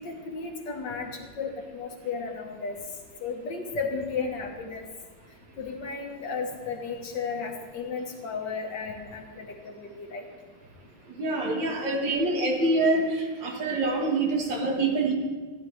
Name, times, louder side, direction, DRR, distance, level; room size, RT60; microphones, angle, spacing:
voice 1, 0.0-2.8 3.2-4.8 5.6-10.2, left 5 dB, 75° left, 2 dB, 1.9 m, -34 dB
voice 2, 11.2-13.1 13.4-15.1, right 2 dB, 85° right, 0 dB, 2.3 m, -25 dB
14.0 x 10.5 x 3.3 m, 1.5 s
omnidirectional pair, 2.0 m